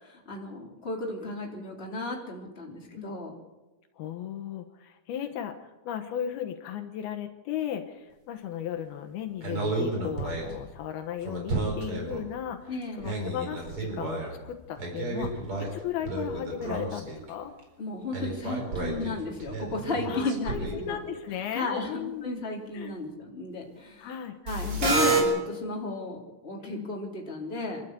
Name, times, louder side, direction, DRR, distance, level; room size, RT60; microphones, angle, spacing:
voice 1, 0.0-3.3 12.7-13.1 17.8-21.0 21.5-24.1 24.4-27.8, left 2 dB, 15° left, -1 dB, 3.4 m, -34 dB
voice 2, 4.0-17.5 20.0-22.4 22.7-22.9 24.0-24.4 26.6-26.9, left 9 dB, 75° left, 7 dB, 3.0 m, -36 dB
sound 1, 9.4-10.6 11.2-12.3 12.8-14.5 14.8-17.3 17.6-17.7 18.1-20.9 24.5-25.2, right 3 dB, 35° right, 4.8 m, -31 dB
27.0 x 12.5 x 8.2 m, 1.1 s
omnidirectional pair, 4.5 m